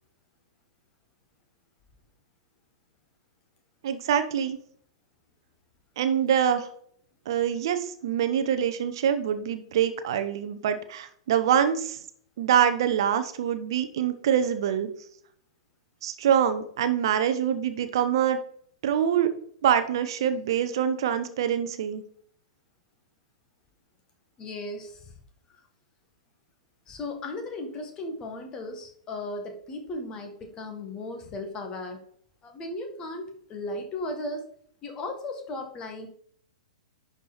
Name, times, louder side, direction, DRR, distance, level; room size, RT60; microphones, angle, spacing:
voice 1, 3.8-4.6 6.0-6.7 7.3-12.0 12.4-14.9 16.0-18.4 18.8-19.3 19.6-22.0, right 9 dB, 50° right, 10 dB, 0.9 m, -25 dB
voice 2, 24.4-25.2 25.5-25.6 26.9-32.0 32.4-34.4 34.8-36.1, left 2 dB, 25° left, 5 dB, 1.8 m, -36 dB
11.0 x 4.7 x 4.2 m, 0.62 s
figure-of-eight pair, 105°, 3 cm